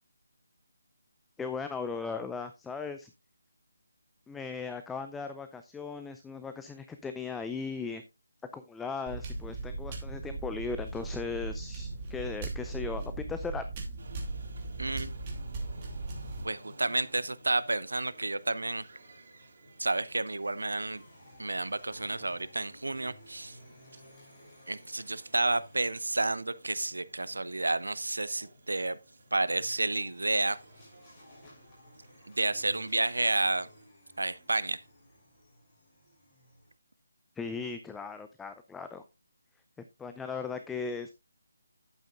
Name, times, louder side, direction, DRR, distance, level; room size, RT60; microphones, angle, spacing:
voice 1, 1.4-3.1 4.3-8.0 8.5-13.7 37.4-39.0 40.0-41.1, left 5 dB, 5° left, 0.5 m, -37 dB
sound 1, 9.1-16.4, right 3 dB, 25° right, 2.7 m, -38 dB
sound 2, 14.0-33.9, right 1 dB, 50° right, 5.3 m, -56 dB
voice 2, 14.8-15.1 16.4-18.8 19.8-21.0 21.4-23.6 24.7-29.0 29.3-30.6 32.3-33.7 34.2-34.8, right 2 dB, 75° right, 0.8 m, -30 dB
sound 3, 20.6-26.4 29.5-36.7, equal, 20° left, 6.1 m, -56 dB
11.0 x 8.8 x 2.4 m
figure-of-eight pair, 150°, 0 cm